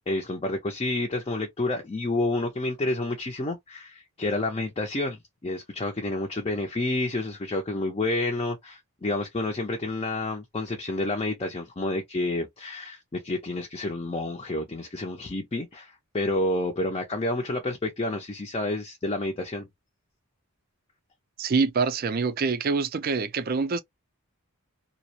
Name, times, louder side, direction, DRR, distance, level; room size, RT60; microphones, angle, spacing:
voice 1, 0.0-19.7, left 2 dB, 25° left, 0.4 m, -29 dB
voice 2, 21.4-23.8, right 4 dB, 40° right, 0.4 m, -25 dB
2.4 x 2.0 x 2.7 m
head